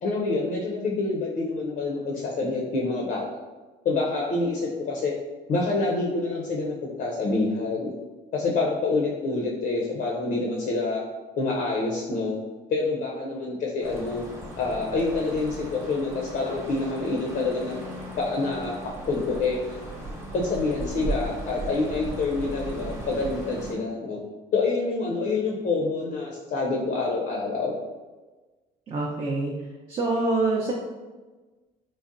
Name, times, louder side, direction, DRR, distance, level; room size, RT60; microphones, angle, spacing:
voice 1, 0.0-3.2 3.8-5.1 5.5-7.9 8.3-11.0 11.4-12.4 12.7-14.2 14.6-17.8 18.1-19.6 20.3-24.2 24.5-27.7, left 3 dB, 55° left, -2 dB, 0.6 m, -27 dB
sound 1, 13.8-23.7, right 1 dB, 15° right, 0.8 m, -37 dB
voice 2, 28.9-29.5 29.9-30.7, right 2 dB, 35° right, -3 dB, 0.5 m, -25 dB
3.8 x 2.1 x 2.5 m, 1.3 s
cardioid pair, 110°, 17 cm